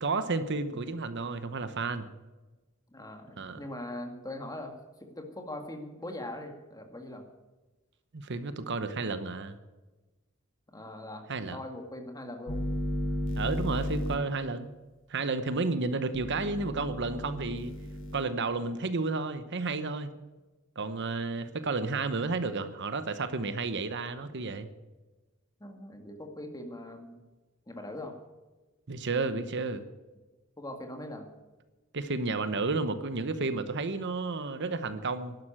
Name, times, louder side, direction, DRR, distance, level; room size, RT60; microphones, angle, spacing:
voice 1, 0.0-2.1 3.4-3.6 8.1-9.6 11.3-11.6 13.4-14.7 15.1-17.7 18.1-20.1 20.8-24.7 28.9-29.8 31.9-35.4, right 3 dB, 55° right, 11 dB, 1.0 m, -32 dB
voice 2, 2.9-4.7 5.0-7.2 10.7-12.6 25.6-27.2 27.7-28.2 30.6-31.3, left 1 dB, 20° left, 4 dB, 2.0 m, -41 dB
sound 1, 12.5-14.2 16.1-18.2, left 1 dB, 65° left, 2.8 m, -34 dB
12.0 x 11.0 x 8.9 m, 1.2 s
head